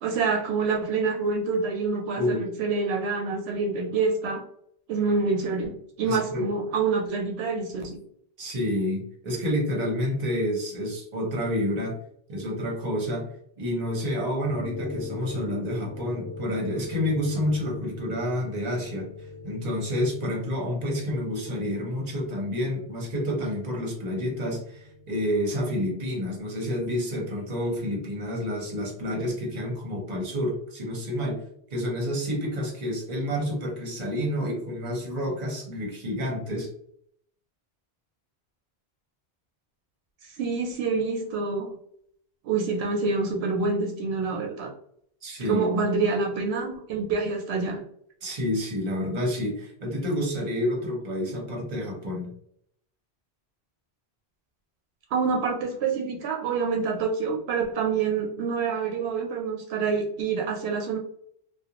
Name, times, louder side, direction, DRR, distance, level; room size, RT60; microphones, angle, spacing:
voice 1, 0.0-4.4 4.9-8.0 40.2-41.8 42.4-44.7 45.5-47.8 55.1-61.0, right 4 dB, 80° right, 0 dB, 0.8 m, -27 dB
voice 2, 6.0-6.5 8.4-12.0 12.3-13.3 13.6-19.1 19.4-31.4 31.7-36.7 45.2-45.8 48.2-52.4, left 1 dB, 45° right, -1 dB, 0.9 m, -29 dB
sound 1, 14.4-29.0, left 3 dB, 45° left, 0.8 m, -43 dB
2.4 x 2.2 x 2.8 m, 0.67 s
omnidirectional pair, 1.1 m